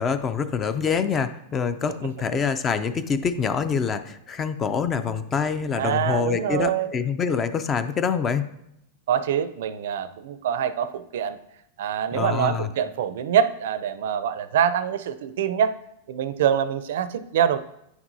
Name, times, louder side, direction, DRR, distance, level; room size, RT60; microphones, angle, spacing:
voice 1, 0.0-8.5 12.1-12.7, left 6 dB, 20° left, 11 dB, 0.4 m, -25 dB
voice 2, 5.8-6.9 9.1-11.4 11.8-15.7 16.1-17.6, right 9 dB, 70° right, 13 dB, 0.5 m, -24 dB
9.3 x 5.9 x 2.7 m, 0.82 s
supercardioid pair, 155°, 0 cm